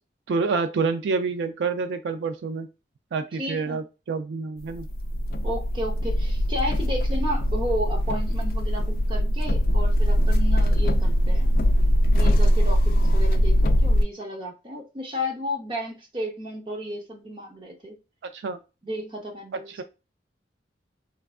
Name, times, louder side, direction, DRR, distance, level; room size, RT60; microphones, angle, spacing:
voice 1, 0.3-2.7 3.1-4.9 18.3-18.6 19.8-19.9, right 4 dB, 85° right, 9 dB, 0.4 m, -27 dB
voice 2, 3.3-3.8 5.4-11.5 12.1-18.0 18.8-19.7, equal, 30° right, 1 dB, 0.6 m, -33 dB
sound 1, 4.7-14.0, equal, 55° left, 0.3 m, -21 dB
3.2 x 2.3 x 2.4 m, 0.29 s
head